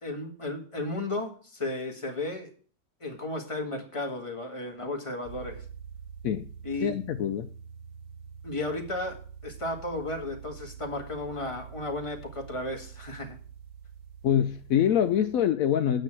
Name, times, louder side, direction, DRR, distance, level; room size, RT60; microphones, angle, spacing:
voice 1, 0.0-2.5 3.0-5.6 6.6-7.0 8.4-9.2 9.4-13.4, left 2 dB, 20° left, 3 dB, 1.9 m, -34 dB
sound 1, 5.2-15.5, right 7 dB, 65° right, 1.3 m, -46 dB
voice 2, 6.8-7.5 14.2-16.0, left 9 dB, 75° left, 9 dB, 1.0 m, -25 dB
8.9 x 6.3 x 7.5 m, 0.42 s
omnidirectional pair, 1.5 m